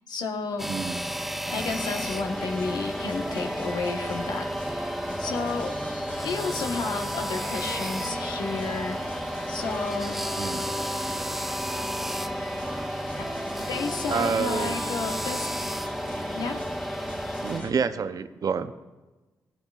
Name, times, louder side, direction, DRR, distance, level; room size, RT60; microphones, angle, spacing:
voice 1, 0.1-0.7 1.5-4.9 5.2-6.0 6.2-9.0 9.5-10.2 13.2-13.3 13.7-15.5 16.3-16.6, left 4 dB, 75° left, 4 dB, 1.1 m, -32 dB
sound 1, 0.6-17.6, right 1 dB, 5° right, 0.3 m, -33 dB
voice 2, 0.7-1.0 10.4-10.7 14.1-14.8 17.4-18.7, right 6 dB, 60° right, 11 dB, 0.6 m, -28 dB
sound 2, 1.5-17.7, left 1 dB, 20° left, 2.2 m, -37 dB
sound 3, 2.6-17.3, right 2 dB, 20° right, 0.8 m, -42 dB
16.0 x 12.0 x 2.4 m, 1.2 s
cardioid pair, 55°, 7 cm